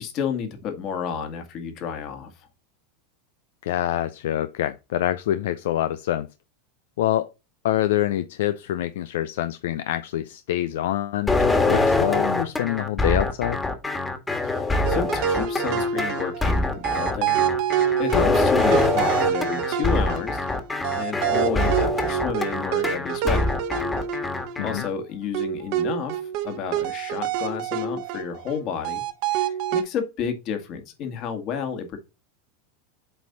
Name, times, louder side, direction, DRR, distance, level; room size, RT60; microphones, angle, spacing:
voice 1, 0.0-2.5 14.4-20.5 20.9-23.5 24.6-29.0 29.3-32.0, left 7 dB, 50° left, 2.0 m, -31 dB
voice 2, 3.6-6.3 7.0-7.3 7.6-13.6 24.6-24.8, left 12 dB, 75° left, 0.5 m, -26 dB
sound 1, 11.3-24.9, left 2 dB, 15° left, 1.6 m, -24 dB
sound 2, 14.8-24.9 25.3-28.6 28.8-29.8, right 9 dB, 60° right, 1.2 m, -27 dB
7.7 x 4.3 x 4.0 m
hypercardioid pair, 100°, 0 cm